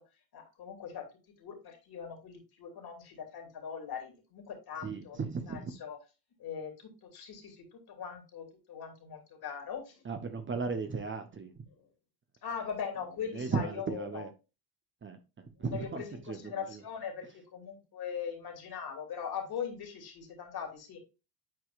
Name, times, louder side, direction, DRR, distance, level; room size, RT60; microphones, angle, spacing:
voice 1, 0.3-1.0 1.4-6.0 6.4-10.0 12.4-14.3 15.7-21.0, left 7 dB, 50° left, 2.7 m, -41 dB
voice 2, 4.8-5.7 10.0-11.6 13.3-14.3 15.0-15.2 15.6-16.8, right 5 dB, 25° right, 0.9 m, -36 dB
9.4 x 4.7 x 2.5 m
hypercardioid pair, 70°, 49 cm